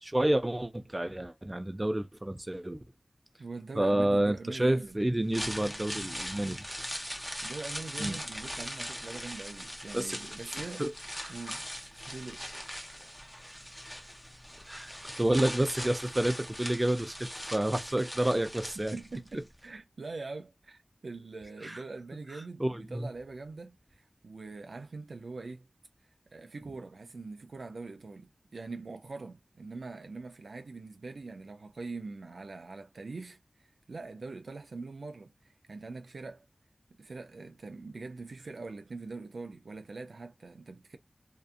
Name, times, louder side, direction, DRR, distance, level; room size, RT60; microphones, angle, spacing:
voice 1, 0.0-2.8 3.7-6.6 8.0-8.2 9.9-10.2 10.8-10.9 11.2-11.3 14.7-14.9 15.2-18.9 21.6-21.8 22.6-23.1, right 1 dB, 25° right, 0.6 m, -29 dB
voice 2, 3.4-5.0 7.4-10.9 11.3-12.4 18.9-25.7 26.3-33.4 33.9-35.3 35.7-36.5 37.0-41.0, right 3 dB, 90° right, 0.4 m, -43 dB
sound 1, 5.1-19.3 19.6-19.7, equal, 5° left, 0.8 m, -40 dB
2.7 x 2.4 x 2.3 m
cardioid pair, 40°, 0 cm